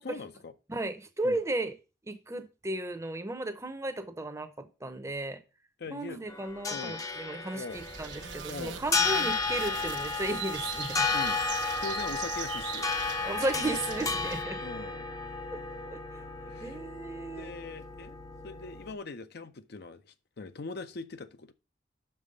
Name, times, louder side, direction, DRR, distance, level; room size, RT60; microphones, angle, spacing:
voice 1, 0.0-0.5 1.2-1.4 5.8-6.2 6.7-7.0 7.5-7.8 8.5-8.8 11.1-11.4 11.8-12.9 14.6-15.1 16.5-16.8 17.3-18.2 18.4-21.5, left 3 dB, 60° left, 0.6 m, -41 dB
voice 2, 0.7-1.7 2.0-5.4 5.9-11.0 13.2-14.6 15.5-16.2 16.6-17.5, right 2 dB, 15° right, 0.7 m, -35 dB
sound 1, 6.3-18.9, left 4 dB, 20° left, 0.6 m, -33 dB
sound 2, 7.7-14.4, right 6 dB, 65° right, 1.4 m, -41 dB
sound 3, 8.2-13.1, right 6 dB, 85° right, 0.8 m, -47 dB
6.1 x 5.5 x 6.5 m
head